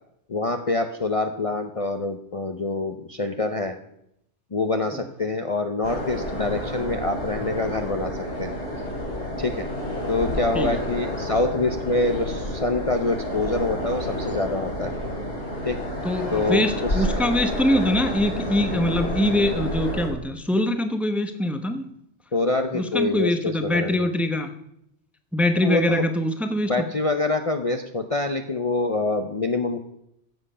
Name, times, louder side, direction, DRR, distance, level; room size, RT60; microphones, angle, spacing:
voice 1, 0.3-3.8 4.5-8.5 9.4-9.7 10.1-14.9 15.6-15.8 16.3-17.0 22.3-24.1 25.6-26.1 26.6-29.8, left 2 dB, 35° left, 5 dB, 0.7 m, -25 dB
sound 1, 5.8-20.1, equal, 70° left, 3.6 m, -30 dB
voice 2, 16.0-21.9 22.7-24.5 25.3-26.7, left 1 dB, ahead, 7 dB, 0.8 m, -23 dB
15.0 x 7.7 x 5.6 m, 0.76 s
omnidirectional pair, 1.2 m